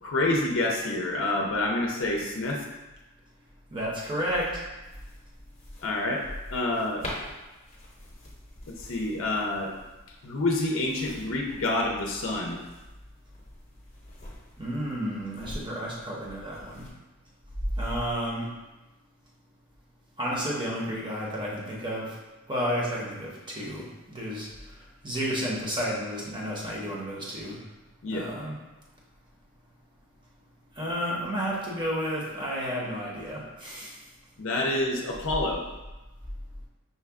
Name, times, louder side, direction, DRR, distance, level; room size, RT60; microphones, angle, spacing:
voice 1, 0.0-2.6 5.8-6.2 6.5-7.1 8.7-9.7 10.2-12.6 28.0-28.3 34.4-35.6, left 2 dB, 65° left, 0 dB, 0.5 m, -28 dB
voice 2, 3.7-4.6 14.6-16.9 17.8-18.5 20.2-22.2 22.5-27.6 28.1-28.5 30.8-34.0, equal, 20° right, -4 dB, 0.8 m, -31 dB
sound 1, 4.8-16.9, left 1 dB, 30° left, 0.8 m, -46 dB
5.5 x 2.2 x 3.5 m, 1.1 s
head